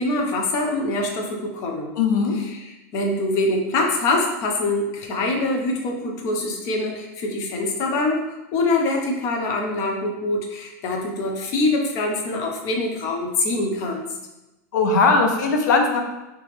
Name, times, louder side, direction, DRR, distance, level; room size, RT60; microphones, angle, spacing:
voice 1, 0.0-1.9 2.3-14.1, left 2 dB, 35° left, 1 dB, 0.6 m, -24 dB
voice 2, 2.0-2.4 14.7-16.0, left 4 dB, 90° left, 3 dB, 0.6 m, -19 dB
3.3 x 2.9 x 3.3 m, 1.0 s
supercardioid pair, 160°, 9 cm